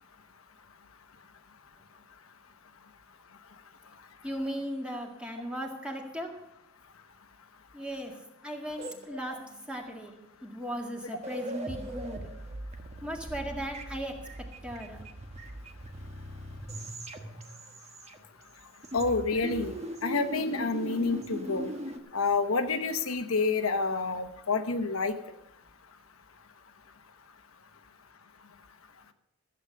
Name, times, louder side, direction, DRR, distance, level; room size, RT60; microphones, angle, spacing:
voice 1, 4.2-6.3 7.7-8.1 8.4-9.4 9.7-10.1 10.4-12.3 13.0-14.1 14.6-15.0, equal, 5° right, 1 dB, 1.9 m, -37 dB
sound 1, 8.8-9.7 10.8-10.9 11.1-18.5 18.8-22.0, right 1 dB, 30° right, 1.2 m, -40 dB
voice 2, 18.9-19.7 20.0-21.7 22.1-25.1, left 4 dB, 85° left, 7 dB, 1.1 m, -28 dB
14.5 x 8.2 x 6.5 m, 0.85 s
head